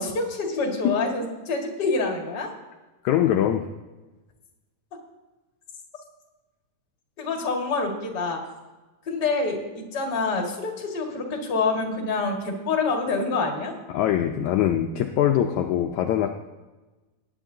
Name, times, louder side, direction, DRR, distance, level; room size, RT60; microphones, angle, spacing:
voice 1, 0.0-2.5 7.2-8.4 9.1-13.7, left 3 dB, 35° left, 1 dB, 2.0 m, -26 dB
voice 2, 3.0-3.7 13.9-16.3, left 11 dB, 80° left, 4 dB, 1.7 m, -22 dB
19.0 x 10.0 x 2.8 m, 1.2 s
omnidirectional pair, 4.0 m